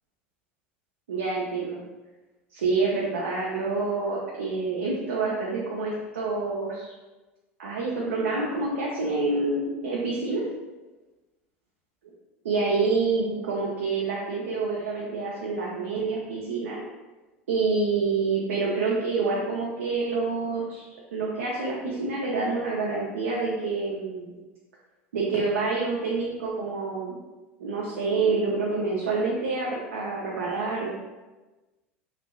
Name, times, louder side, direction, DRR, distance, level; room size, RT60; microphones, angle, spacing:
voice 1, 1.1-1.8 2.5-6.9 7.6-10.4 12.4-16.8 17.5-20.8 21.1-24.3 25.1-27.1 27.6-30.9, right 3 dB, 80° right, -4 dB, 0.5 m, -27 dB
3.1 x 2.4 x 2.3 m, 1.2 s
hypercardioid pair, 80°, 7 cm